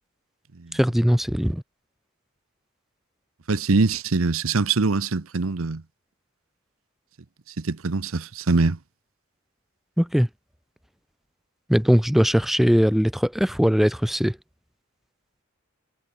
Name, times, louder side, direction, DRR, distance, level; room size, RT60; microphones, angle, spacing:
voice 1, 0.7-1.6 10.0-10.3 11.7-14.4, equal, ahead, 0.4 m, -20 dB
voice 2, 3.5-5.8 7.6-8.8, right 3 dB, 70° right, 0.9 m, -23 dB
head